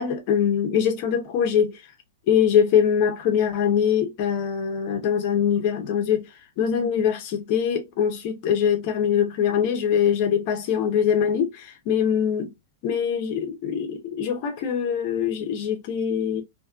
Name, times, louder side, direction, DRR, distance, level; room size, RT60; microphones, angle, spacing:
voice 1, 0.0-1.8 2.3-6.3 6.6-12.5 12.8-16.4, left 8 dB, 30° left, 0.6 m, -23 dB
2.5 x 2.5 x 2.3 m
supercardioid pair, 180°, 0 cm